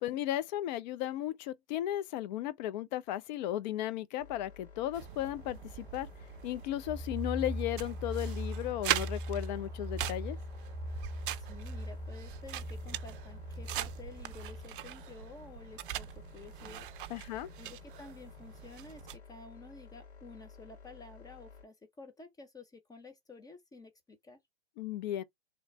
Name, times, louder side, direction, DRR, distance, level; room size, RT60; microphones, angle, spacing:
voice 1, 0.0-6.1 6.4-10.4 17.1-17.5 24.8-25.2, left 13 dB, 45° left, 0.7 m, -35 dB
sound 1, 4.2-21.6, left 5 dB, 90° left, 2.0 m, -54 dB
sound 2, 4.9-19.2, right 13 dB, 55° right, 0.5 m, -42 dB
sound 3, 6.9-14.6, equal, 30° right, 2.0 m, -40 dB
voice 2, 11.4-16.9 17.6-24.4, left 3 dB, 10° left, 0.9 m, -51 dB
3.9 x 3.2 x 3.2 m
hypercardioid pair, 120°, 32 cm